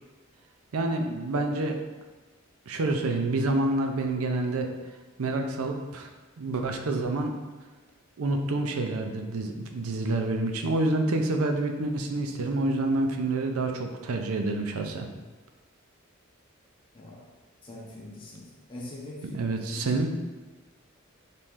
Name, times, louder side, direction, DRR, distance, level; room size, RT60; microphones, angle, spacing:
voice 1, 0.7-1.8 2.7-4.7 5.2-6.1 6.4-7.3 8.2-15.1 19.3-20.1, right 2 dB, 85° right, 4 dB, 0.5 m, -28 dB
voice 2, 16.9-17.3 17.6-20.1, left 1 dB, 25° left, -4 dB, 0.5 m, -43 dB
4.2 x 3.1 x 3.6 m, 1.2 s
head